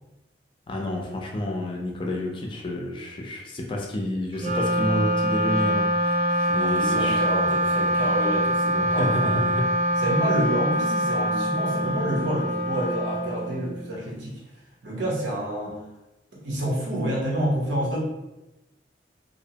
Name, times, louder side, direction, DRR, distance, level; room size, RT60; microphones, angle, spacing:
voice 1, 0.7-6.2 6.5-7.2 8.8-9.7, left 1 dB, 30° left, 0 dB, 0.4 m, -29 dB
Wind instrument woodwind instrument, 4.3-13.9, equal, 35° right, 0.4 m, -24 dB
voice 2, 6.3-9.6 10.0-14.4 14.8-15.8 16.4-18.0, right 1 dB, 90° right, -5 dB, 0.8 m, -28 dB
2.6 x 2.0 x 2.7 m, 0.97 s
head